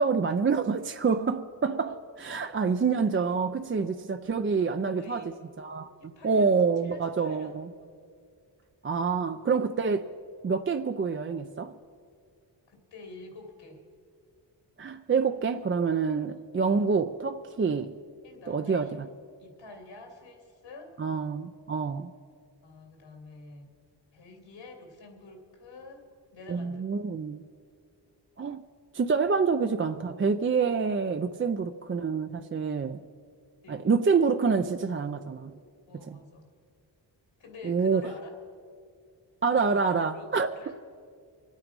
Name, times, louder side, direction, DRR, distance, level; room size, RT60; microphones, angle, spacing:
voice 1, 0.0-5.2 5.6-7.7 8.8-10.1 10.4-11.8 14.8-17.9 18.5-19.1 21.0-22.1 26.5-27.4 28.4-28.6 28.9-33.0 33.7-35.5 36.1-36.2 37.6-38.1 39.4-40.5, right 5 dB, 30° right, 0.5 m, -27 dB
voice 2, 3.8-4.1 4.8-5.4 6.0-8.1 12.7-13.8 16.0-16.5 18.2-19.0 19.4-20.9 22.6-23.7 24.1-26.8 33.6-33.9 35.9-36.4 37.4-38.3 39.5-39.7 40.1-40.8, left 3 dB, 80° left, 2.9 m, -48 dB
24.5 x 9.0 x 5.3 m
cardioid pair, 80°, 43 cm